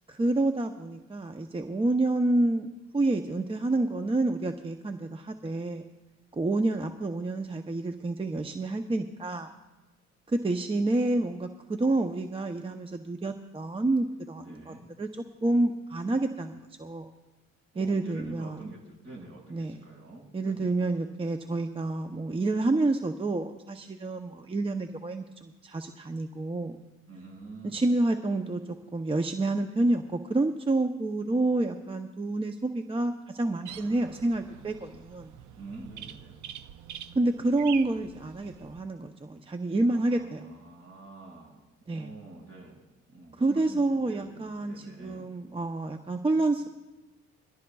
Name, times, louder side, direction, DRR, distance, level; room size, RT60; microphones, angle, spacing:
voice 1, 0.1-2.7 2.9-5.8 6.3-9.5 10.3-15.1 15.4-17.1 17.8-18.6 19.5-19.8 20.3-26.8 27.6-28.6 28.9-35.3 37.1-40.5 41.9-42.1 43.4-46.7, right 2 dB, 20° right, 6 dB, 0.7 m, -28 dB
voice 2, 14.4-14.9 17.7-20.8 27.1-27.9 35.5-36.4 39.9-45.3, right 2 dB, 55° right, -1 dB, 5.6 m, -47 dB
sound 1, 33.7-38.8, right 10 dB, 75° right, 0.7 m, -45 dB
23.0 x 13.5 x 2.3 m, 1.1 s
cardioid pair, 90°, 30 cm